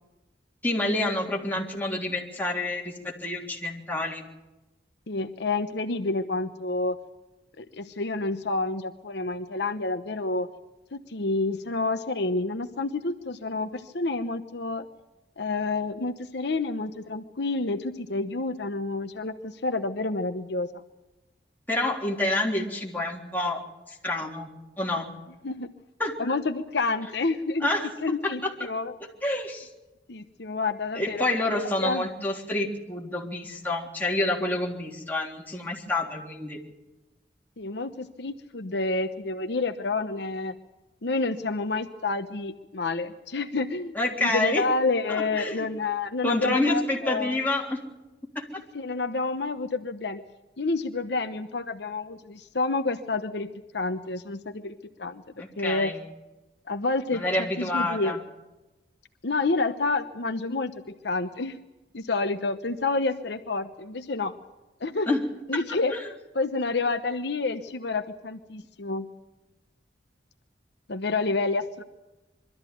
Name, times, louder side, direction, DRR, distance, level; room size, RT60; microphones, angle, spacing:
voice 1, 0.6-4.2 21.7-23.6 23.9-24.5 24.8-25.1 26.0-26.3 27.6-27.9 28.2-28.5 29.2-29.7 30.9-36.6 43.9-44.6 45.1-45.7 46.2-47.8 55.4-56.0 57.1-58.2 65.1-65.2 65.9-66.1, left 2 dB, 10° left, -2 dB, 3.5 m, -28 dB
voice 2, 5.1-7.0 7.6-10.5 10.9-14.9 15.4-20.7 25.4-25.7 26.2-27.7 28.0-28.9 30.1-31.2 31.8-32.1 37.6-40.5 41.0-47.4 48.5-50.2 50.6-55.2 55.6-55.9 56.7-57.2 57.6-58.2 59.2-60.7 61.0-61.6 61.9-64.3 64.8-65.2 65.5-66.0 66.3-69.1 70.9-71.8, left 3 dB, 65° left, 7 dB, 1.0 m, -29 dB
23.5 x 13.5 x 9.2 m, 1.1 s
head